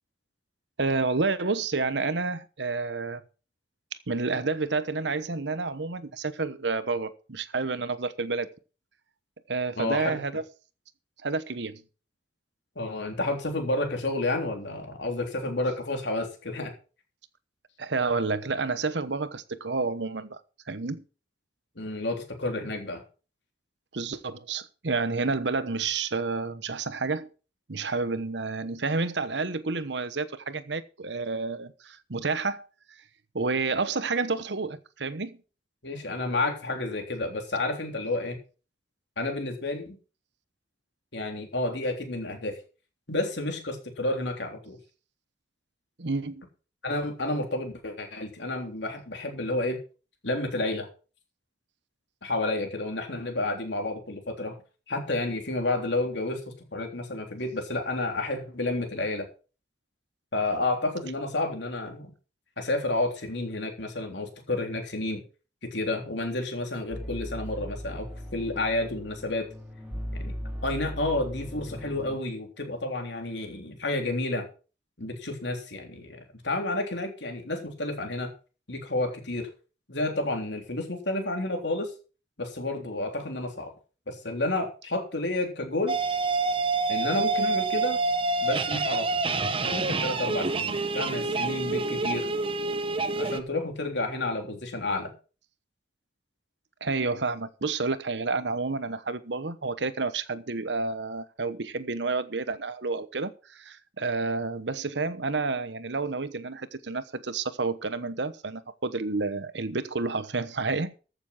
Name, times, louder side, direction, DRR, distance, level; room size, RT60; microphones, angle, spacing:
voice 1, 0.8-3.2 4.1-8.5 9.5-10.4 11.2-11.8 17.8-20.4 20.7-21.0 23.9-27.3 27.7-32.7 33.3-35.4 46.0-46.4 96.8-111.0, right 3 dB, 70° right, 1.0 m, -30 dB
voice 2, 9.8-10.2 12.8-16.7 21.8-23.0 35.8-38.4 39.2-40.0 41.1-42.6 43.1-44.8 46.8-49.8 50.2-50.9 52.2-54.6 54.9-59.3 60.3-62.1 62.6-65.2 65.7-69.5 70.2-70.3 70.6-74.5 75.0-78.3 78.7-79.5 79.9-81.9 82.4-83.7 84.1-86.0 86.9-88.0 88.4-89.2 89.6-92.3 93.2-95.1, left 2 dB, 70° left, 3.5 m, -30 dB
sound 1, 66.9-72.2, equal, 10° right, 2.7 m, -38 dB
sound 2, 85.9-93.4, right 3 dB, 30° right, 1.0 m, -27 dB
14.0 x 7.2 x 5.6 m
head